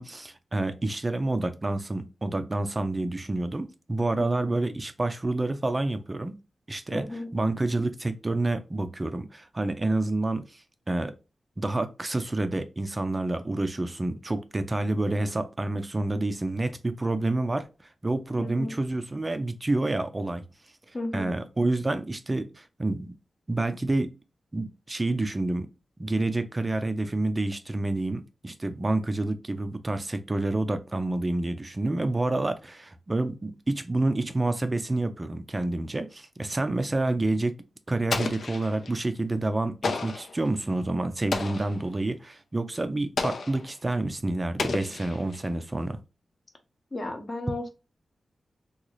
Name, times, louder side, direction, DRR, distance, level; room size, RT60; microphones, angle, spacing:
voice 1, 0.0-6.3 6.7-10.6 10.9-11.1 11.6-17.7 18.0-20.4 21.1-23.1 23.5-24.1 24.5-25.7 26.0-37.5 37.9-46.0, right 2 dB, 20° right, 0.4 m, -28 dB
voice 2, 4.2-4.5 6.9-7.3 18.4-18.8 20.9-21.3 46.9-47.7, left 2 dB, 25° left, 0.7 m, -34 dB
Explosion, 38.1-39.0 39.8-40.4 41.3-41.8 43.2-43.7 44.6-45.5, left 4 dB, 65° left, 0.5 m, -32 dB
3.8 x 2.4 x 3.0 m
wide cardioid pair, 165°, 0 cm